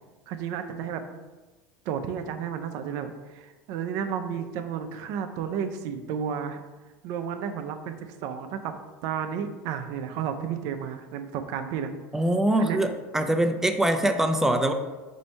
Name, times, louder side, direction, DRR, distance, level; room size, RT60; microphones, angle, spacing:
voice 1, 0.3-1.0 1.9-6.6 7.0-8.7 9.0-11.9 12.6-12.8, right 8 dB, 65° right, 7 dB, 0.5 m, -32 dB
voice 2, 12.1-14.7, right 1 dB, 5° right, 7 dB, 0.4 m, -23 dB
4.2 x 2.7 x 4.3 m, 1.2 s
supercardioid pair, 110°, 6 cm